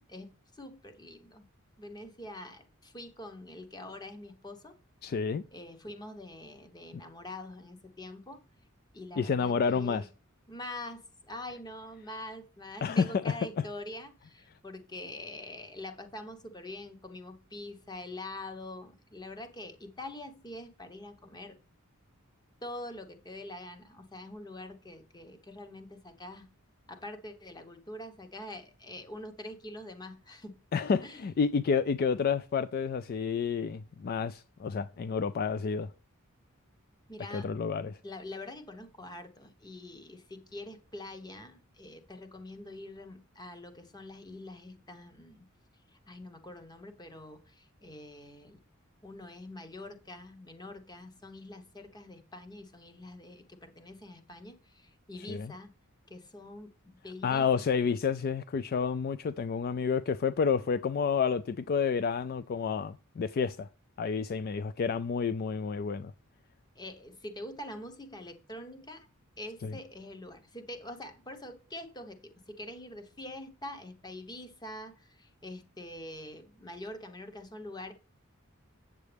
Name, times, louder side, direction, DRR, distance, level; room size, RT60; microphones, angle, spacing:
voice 1, 0.0-1.5 1.8-4.7 5.5-8.4 8.9-10.1 10.5-21.6 22.6-26.5 26.9-30.6 31.0-31.3 37.1-37.5 38.0-45.5 45.9-48.6 49.0-55.7 56.1-57.9 66.7-69.1 69.4-77.9, left 1 dB, 20° left, 1.1 m, -45 dB
voice 2, 5.0-5.4 9.2-10.1 12.8-13.4 30.7-35.9 37.3-38.0 55.3-55.5 57.2-63.7 64.0-66.1 69.6-69.7, left 6 dB, 45° left, 0.3 m, -30 dB
8.0 x 7.4 x 3.4 m
head